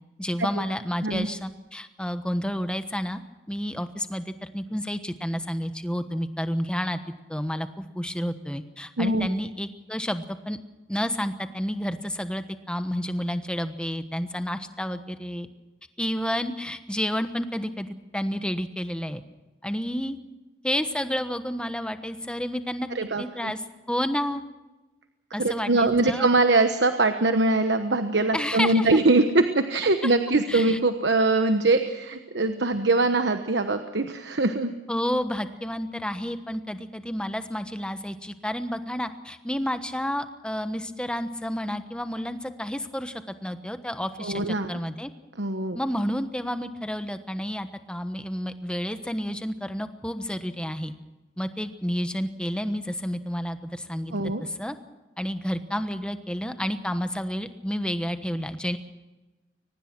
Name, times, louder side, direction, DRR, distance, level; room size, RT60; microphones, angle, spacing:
voice 1, 0.2-3.2 3.5-7.0 7.3-10.6 10.9-15.5 16.0-17.9 18.1-19.2 19.6-20.2 20.6-22.9 23.2-23.6 23.9-24.4 25.3-26.3 28.3-29.0 30.0-30.1 30.5-30.8 34.9-45.1 45.7-50.9 51.4-54.8 55.2-58.8, equal, 5° left, 9 dB, 1.2 m, -30 dB
voice 2, 9.0-9.3 22.9-23.5 25.4-34.7 44.2-44.7 45.4-45.8 54.1-54.4, right 2 dB, 75° right, 8 dB, 1.2 m, -22 dB
23.5 x 19.5 x 6.0 m, 1.1 s
head